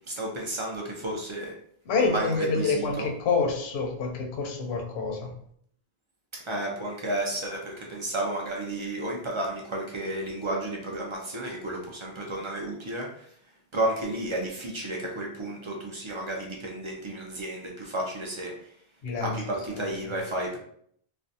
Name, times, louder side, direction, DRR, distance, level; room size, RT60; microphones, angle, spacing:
voice 1, 0.1-1.5 2.0-3.1 6.4-13.3 13.7-18.7 19.2-20.6, right 1 dB, 55° right, -1 dB, 0.3 m, -32 dB
voice 2, 1.9-5.3 19.0-19.4 19.7-20.1, left 4 dB, 80° left, 2 dB, 0.8 m, -27 dB
2.5 x 2.1 x 2.6 m, 0.65 s
omnidirectional pair, 1.1 m